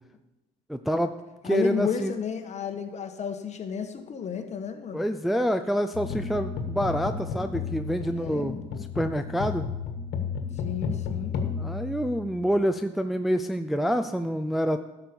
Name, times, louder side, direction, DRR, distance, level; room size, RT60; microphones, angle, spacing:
voice 1, 0.7-1.2 1.4-2.1 4.9-8.6 9.0-9.7 11.6-14.8, equal, ahead, 7 dB, 0.4 m, -27 dB
voice 2, 1.4-5.0 8.1-8.6 10.6-11.4, left 7 dB, 40° left, 6 dB, 1.4 m, -32 dB
sound 1, 5.9-12.6, left 5 dB, 75° left, 1.6 m, -33 dB
12.0 x 6.0 x 7.0 m, 1.0 s
cardioid pair, 110°, 17 cm